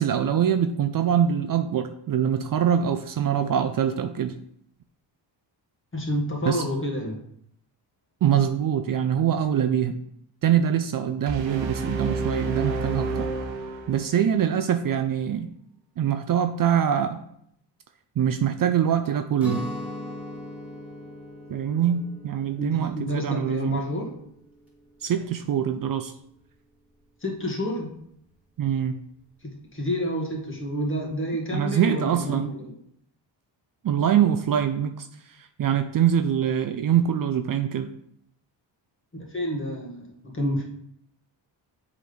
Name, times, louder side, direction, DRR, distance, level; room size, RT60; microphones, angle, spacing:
voice 1, 0.0-4.3 6.4-6.6 8.2-10.0 10.4-13.3 13.9-15.5 16.0-17.2 18.2-19.6 21.5-23.8 25.0-26.1 28.6-29.0 31.5-32.5 33.8-35.1 35.4-37.9, right 9 dB, 50° right, 8 dB, 0.5 m, -24 dB
voice 2, 5.9-7.2 22.6-24.2 27.2-27.9 29.4-32.7 39.1-40.7, equal, 25° left, -1 dB, 1.9 m, -29 dB
sound 1, 11.3-14.3, right 3 dB, 90° right, 1.1 m, -30 dB
Guitar, 19.4-25.2, left 1 dB, 5° right, 2.2 m, -40 dB
7.7 x 4.1 x 5.1 m, 0.71 s
cardioid pair, 120°, 44 cm